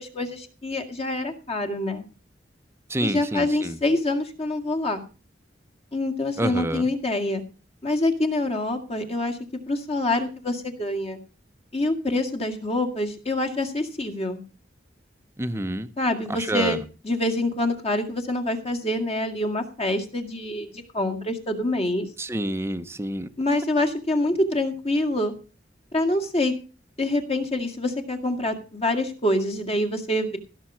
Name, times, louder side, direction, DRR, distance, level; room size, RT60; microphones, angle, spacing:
voice 1, 0.0-2.0 3.0-5.0 5.9-7.4 7.8-9.4 9.7-11.2 11.7-14.4 16.0-16.8 17.0-22.1 23.4-25.3 25.9-26.5 27.0-30.4, left 1 dB, 35° left, 2.1 m, -26 dB
voice 2, 2.9-3.8 6.4-6.9 15.4-15.9 16.3-16.8 22.2-23.3, right 1 dB, 15° right, 0.8 m, -28 dB
16.0 x 6.9 x 6.2 m
head